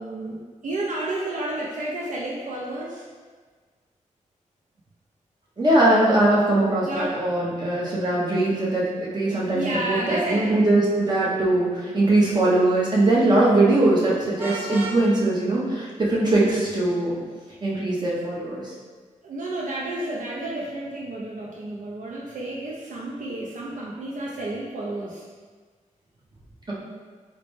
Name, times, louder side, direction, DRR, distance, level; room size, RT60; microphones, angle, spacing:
voice 1, 0.0-3.1 6.9-7.1 9.5-10.6 19.2-25.2, right 1 dB, 75° right, -4 dB, 0.5 m, -31 dB
voice 2, 5.6-17.1 17.6-18.6, right 2 dB, 35° right, -7 dB, 0.9 m, -21 dB
Vehicle horn car horn honking, 14.4-15.0, right 1 dB, 15° right, 0.7 m, -33 dB
4.0 x 2.1 x 3.1 m, 1.5 s
wide cardioid pair, 90°, 13 cm